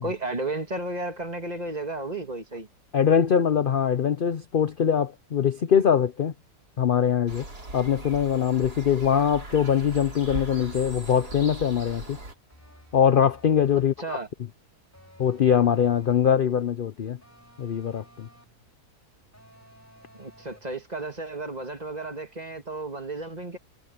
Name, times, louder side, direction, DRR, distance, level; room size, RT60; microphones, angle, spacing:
voice 1, 0.0-2.7 14.0-14.3 20.1-23.6, right 2 dB, 25° right, 2.2 m, -33 dB
voice 2, 2.9-6.3 6.8-7.4 7.7-12.2 12.9-13.9 15.2-17.2 17.6-18.3, left 8 dB, 50° left, 0.6 m, -22 dB
sound 1, 7.3-12.3, right 2 dB, 90° right, 5.6 m, -39 dB
sound 2, 10.2-11.7 12.5-14.0 14.9-16.4 17.2-18.6 19.3-20.8, equal, 10° left, 5.0 m, -53 dB
omnidirectional pair, 1.6 m